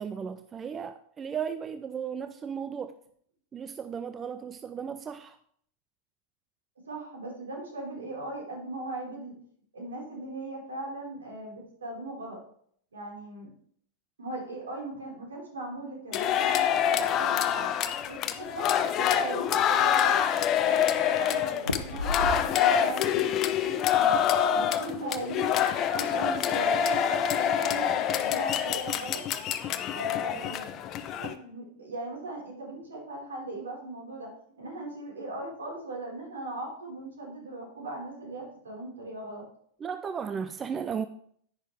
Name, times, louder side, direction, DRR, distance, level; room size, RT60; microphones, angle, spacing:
voice 1, 0.0-3.0 3.5-5.4 39.8-41.1, right 7 dB, 20° right, 0.5 m, -35 dB
voice 2, 6.8-9.3 9.7-12.4 12.9-13.5 14.2-17.7 18.1-18.7 18.9-20.2 20.6-25.5 25.9-29.2 29.9-30.7 31.2-34.3 34.6-39.4, right 2 dB, 70° right, 5.0 m, -39 dB
sound 1, 16.1-31.3, left 9 dB, 35° left, 0.8 m, -26 dB
sound 2, 17.8-18.6 19.1-19.2 19.5-20.1 21.6-22.9 23.2-23.7, left 1 dB, 85° left, 1.0 m, -34 dB
10.5 x 10.0 x 3.5 m
figure-of-eight pair, 90°, 0 cm